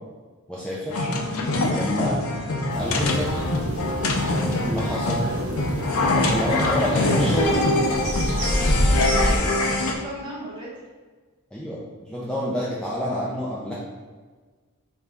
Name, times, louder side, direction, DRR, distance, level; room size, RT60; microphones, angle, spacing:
voice 1, 0.5-1.1 1.6-2.2 2.8-3.4 4.5-5.2 6.1-7.6 11.5-11.8 12.1-13.7, equal, 5° left, -7 dB, 0.4 m, -28 dB
sound 1, 0.9-9.9, left 2 dB, 65° left, 0.5 m, -24 dB
sound 2, 2.7-9.4, equal, 65° right, 0.8 m, -27 dB
voice 2, 4.2-5.4 6.3-7.5 9.1-10.7, equal, 20° right, -6 dB, 1.0 m, -36 dB
4.2 x 2.5 x 3.4 m, 1.4 s
head